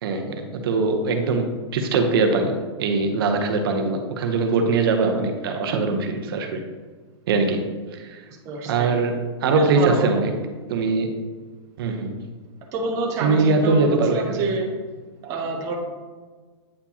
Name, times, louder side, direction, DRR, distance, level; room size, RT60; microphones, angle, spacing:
voice 1, 0.0-6.6 7.3-7.7 7.9-8.2 8.6-10.3 10.7-11.1 11.8-12.2 13.2-14.5, right 3 dB, 55° right, 5 dB, 0.8 m, -22 dB
voice 2, 8.4-8.9 9.5-10.1 12.7-14.7 15.2-15.8, right 3 dB, 20° right, -1 dB, 0.7 m, -27 dB
8.6 x 4.4 x 2.8 m, 1.4 s
hypercardioid pair, 160°, 15 cm